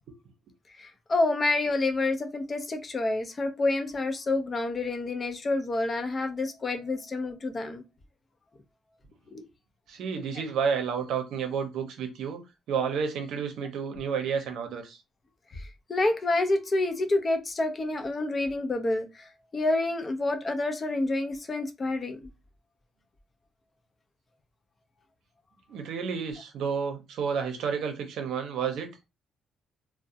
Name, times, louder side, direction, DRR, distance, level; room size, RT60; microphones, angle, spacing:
voice 1, 0.7-7.8 9.3-9.5 10.4-10.5 15.5-22.3, left 2 dB, 35° left, 0.6 m, -28 dB
voice 2, 9.9-12.4 12.7-15.0 25.7-28.9, right 6 dB, 80° right, 0.6 m, -30 dB
2.3 x 2.0 x 2.7 m
cardioid pair, 90°, 0 cm